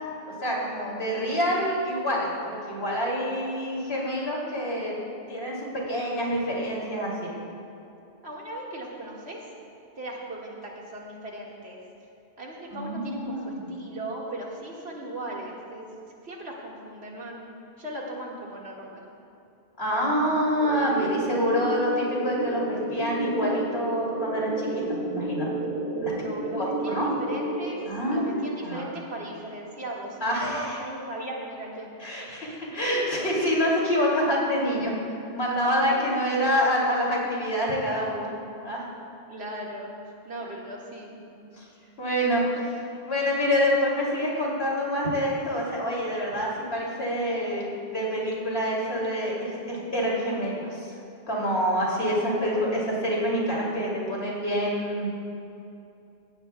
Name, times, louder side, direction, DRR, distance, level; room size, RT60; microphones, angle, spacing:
voice 1, 0.4-5.0 5.3-5.6 5.9-7.3 12.7-13.7 19.8-25.5 26.0-26.1 26.6-27.1 27.8-28.9 30.2-30.8 32.0-34.9 35.3-38.3 38.6-38.8 41.6-41.7 42.0-42.4 43.1-50.9 51.3-55.1, equal, 75° left, -4 dB, 3.3 m, -26 dB
voice 2, 8.2-9.4 10.0-11.8 12.4-15.9 16.2-19.1 25.9-31.9 32.7-32.8 35.9-36.0 38.0-38.3 39.3-39.9 40.3-41.5 52.4-52.7, right 1 dB, 90° right, -3 dB, 2.3 m, -38 dB
sound 1, 20.6-27.9, right 1 dB, 40° right, 1.3 m, -31 dB
17.0 x 16.5 x 2.4 m, 2.7 s
omnidirectional pair, 1.0 m